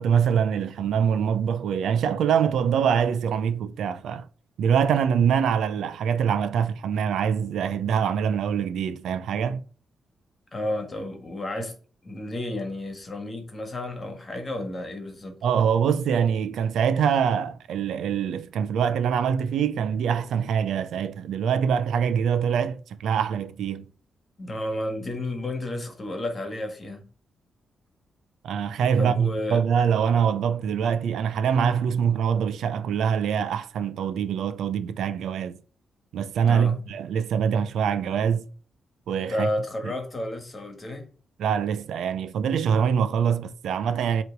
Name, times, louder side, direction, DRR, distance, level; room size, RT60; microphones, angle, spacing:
voice 1, 0.0-4.3 4.6-9.6 15.4-23.9 28.4-35.6 36.1-38.5 39.1-39.5 39.8-39.9 41.4-44.2, right 7 dB, 85° right, 0.6 m, -24 dB
voice 2, 10.5-11.8 12.0-15.4 24.4-27.1 29.0-29.6 36.4-36.8 39.2-41.1, left 1 dB, 25° left, 1.6 m, -32 dB
8.0 x 3.2 x 4.7 m
wide cardioid pair, 165°, 0 cm